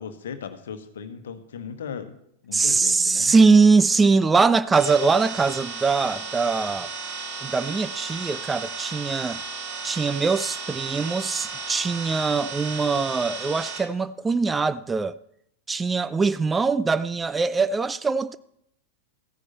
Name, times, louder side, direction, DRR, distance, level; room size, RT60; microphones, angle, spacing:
voice 1, 0.0-2.1 2.4-3.3, left 7 dB, 60° left, 1.2 m, -37 dB
voice 2, 2.5-6.9 7.4-9.4 9.8-15.2 15.7-18.4, right 4 dB, 15° right, 0.3 m, -22 dB
sound 1, 4.7-13.8, right 4 dB, 45° right, 2.4 m, -34 dB
15.0 x 9.7 x 4.2 m
figure-of-eight pair, 90°, 0 cm